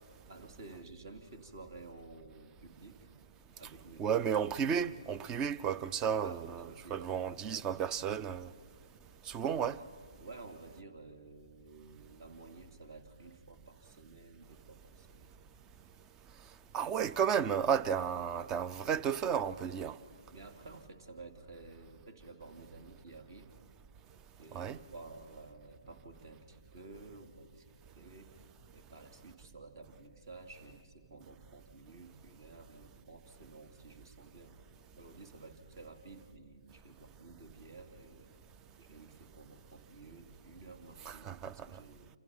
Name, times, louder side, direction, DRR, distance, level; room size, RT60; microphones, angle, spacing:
voice 1, 0.3-3.1 3.6-4.7 6.2-8.4 10.2-15.3 20.3-23.5 24.4-27.6 28.0-28.3 28.7-34.5 35.0-38.3 38.8-42.1, right 3 dB, 50° right, 2.9 m, -52 dB
voice 2, 4.0-8.5 9.3-9.8 16.7-20.0 24.5-24.8 41.1-41.5, right 8 dB, 20° right, 0.5 m, -33 dB
28.5 x 27.5 x 5.5 m
figure-of-eight pair, 140°, 3 cm